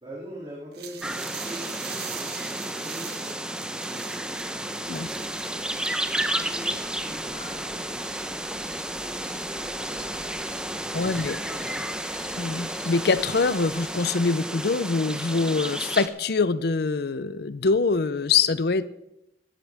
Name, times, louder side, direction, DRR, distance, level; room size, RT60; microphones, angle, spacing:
voice 1, 0.0-5.3 6.4-9.2 9.5-11.8, equal, 30° right, -5 dB, 2.6 m, -44 dB
sound 1, 0.7-7.2, right 8 dB, 65° right, 1.5 m, -42 dB
sound 2, 1.0-16.1, right 1 dB, 5° right, 0.8 m, -32 dB
sound 3, 3.7-14.0, left 3 dB, 35° left, 1.7 m, -49 dB
voice 2, 10.9-11.4 12.4-18.9, left 4 dB, 65° left, 15 dB, 0.6 m, -24 dB
18.0 x 13.0 x 3.5 m, 0.86 s
head